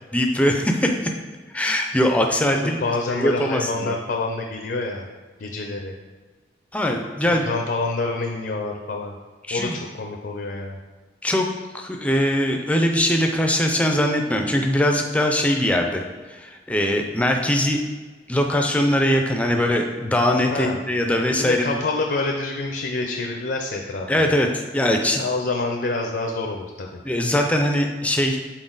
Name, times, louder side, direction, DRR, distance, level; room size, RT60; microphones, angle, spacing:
voice 1, 0.1-0.9 1.5-2.8 3.1-3.9 6.7-7.4 9.5-9.8 11.2-11.5 11.7-16.0 16.3-17.8 18.3-21.6 24.1-25.2 27.0-28.4, left 1 dB, 10° left, 2 dB, 0.5 m, -21 dB
voice 2, 2.5-5.0 5.4-5.9 7.3-9.1 9.5-10.8 20.5-20.8 21.4-24.3 25.2-27.0, left 3 dB, 60° left, 1 dB, 0.6 m, -27 dB
6.2 x 4.1 x 3.9 m, 1.4 s
head